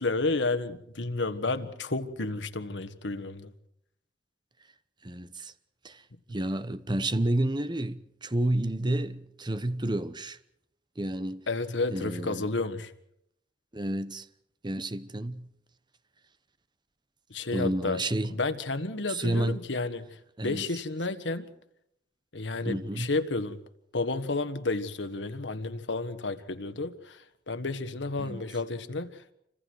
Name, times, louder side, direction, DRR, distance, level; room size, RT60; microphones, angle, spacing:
voice 1, 0.0-3.5 11.5-12.9 17.3-18.0 18.3-21.5 22.3-23.6 23.9-29.3, left 3 dB, 85° left, 1.5 m, -31 dB
voice 2, 5.0-5.5 5.8-6.0 6.3-10.4 11.0-11.5 11.9-12.5 13.7-14.3 14.6-15.5 17.5-18.4 19.1-19.6 20.4-20.7 22.7-23.1 28.2-28.4, right 1 dB, 25° right, 1.0 m, -30 dB
29.0 x 25.0 x 4.7 m
head